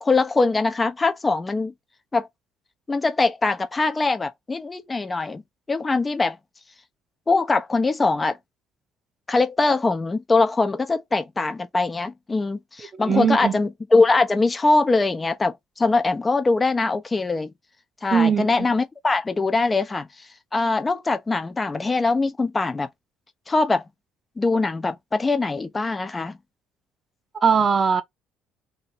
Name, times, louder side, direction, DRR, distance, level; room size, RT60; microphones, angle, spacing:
voice 1, 0.0-1.7 2.1-2.3 2.9-5.4 5.7-6.4 7.3-8.4 9.3-17.5 18.0-20.1 20.5-22.9 23.5-23.8 24.4-26.4, left 3 dB, 25° left, 0.8 m, -22 dB
voice 2, 13.1-13.6 18.1-18.5 27.4-28.0, right 6 dB, 35° right, 0.7 m, -19 dB
2.7 x 2.7 x 4.2 m
supercardioid pair, 85°, 0 cm